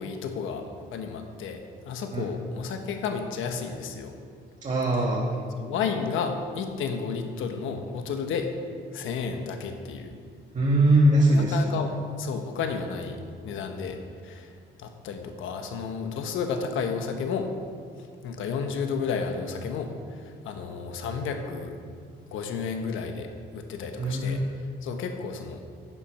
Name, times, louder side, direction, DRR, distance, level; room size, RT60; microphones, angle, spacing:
voice 1, 0.0-4.2 5.6-8.5 8.9-10.1 11.4-11.9 12.2-13.2 13.4-14.0 14.2-17.5 18.2-21.7 22.3-24.4 24.8-25.6, left 5 dB, 85° left, 5 dB, 1.1 m, -32 dB
voice 2, 4.6-5.4 10.5-11.8 24.0-24.4, right 1 dB, 35° right, -4 dB, 1.4 m, -22 dB
10.5 x 7.3 x 5.9 m, 2.1 s
cardioid pair, 90°, 20 cm